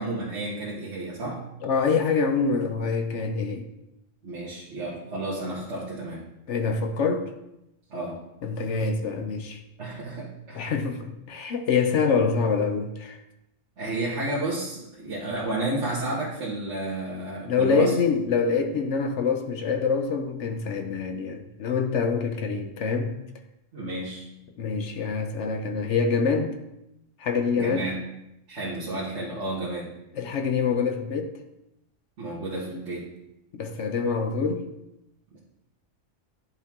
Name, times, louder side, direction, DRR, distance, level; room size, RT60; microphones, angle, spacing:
voice 1, 0.0-1.4 4.2-6.2 7.9-8.2 9.8-10.7 13.8-17.9 23.7-24.2 27.5-28.0 28.5-29.9 32.2-33.1 35.3-35.4, right 2 dB, 60° right, -8 dB, 1.7 m, -31 dB
voice 2, 1.6-3.7 6.5-7.3 8.4-9.6 10.5-13.2 17.4-23.1 24.6-26.5 27.2-27.9 30.2-31.3 33.5-34.6, left 5 dB, 65° left, 6 dB, 1.0 m, -25 dB
10.5 x 4.4 x 3.6 m, 0.86 s
omnidirectional pair, 1.3 m